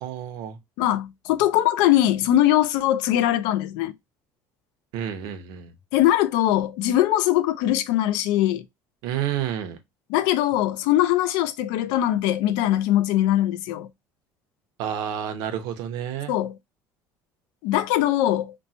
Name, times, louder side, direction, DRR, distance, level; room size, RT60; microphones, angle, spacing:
voice 1, 0.0-0.6 4.9-5.7 9.0-9.8 14.8-16.3, right 10 dB, 65° right, 0.6 m, -30 dB
voice 2, 0.8-3.9 5.9-8.6 10.1-13.9 16.3-16.5 17.6-18.5, left 13 dB, 80° left, 0.4 m, -21 dB
3.0 x 2.1 x 2.6 m
cardioid pair, 175°, 7 cm